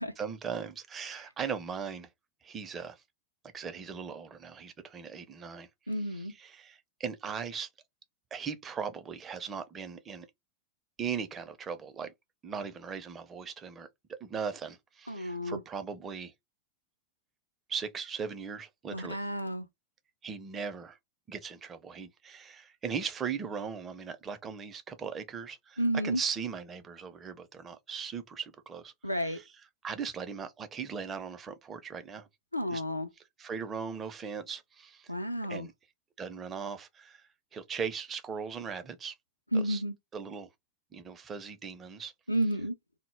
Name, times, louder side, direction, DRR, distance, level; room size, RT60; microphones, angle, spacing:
voice 1, 0.2-2.1 2.4-3.0 3.5-5.7 6.1-7.7 8.3-10.3 11.0-12.1 12.4-13.9 14.2-16.3 17.7-19.2 20.2-21.0 21.3-28.9 29.2-29.4 29.8-32.3 32.7-32.8 33.4-35.1 35.5-35.7 36.2-39.1 39.5-39.8 40.1-40.5 40.9-42.1, right 6 dB, 25° right, 0.4 m, -38 dB
voice 2, 5.9-6.3 15.1-15.6 18.9-19.7 25.8-26.2 29.0-29.4 32.5-33.1 35.1-35.7 39.5-39.9 42.3-42.7, equal, 90° left, 0.3 m, -31 dB
2.0 x 2.0 x 3.0 m
figure-of-eight pair, 90°, 0 cm